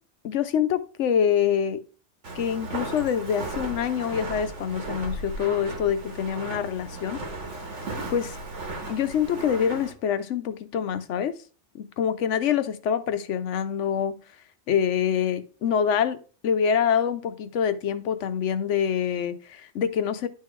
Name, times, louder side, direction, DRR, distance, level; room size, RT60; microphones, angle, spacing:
voice 1, 0.2-1.8 2.3-7.2 8.1-8.4 8.9-11.3 11.7-14.2 14.7-16.2 16.4-20.3, left 8 dB, 85° left, 11 dB, 1.0 m, -25 dB
Walk footsteps, 2.2-9.9, right 2 dB, 85° right, 1.6 m, -36 dB
11.0 x 3.8 x 3.1 m, 0.37 s
omnidirectional pair, 1.2 m